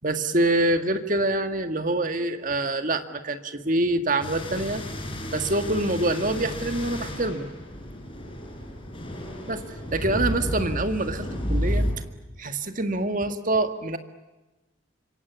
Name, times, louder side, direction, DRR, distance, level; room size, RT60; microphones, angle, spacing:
voice 1, 0.0-4.8 5.3-7.5 9.5-9.6 9.9-11.9 12.4-14.0, right 2 dB, 40° right, 8 dB, 2.0 m, -25 dB
sound 1, 4.2-11.9, equal, 25° left, 5.2 m, -31 dB
26.5 x 24.0 x 8.3 m, 1.1 s
head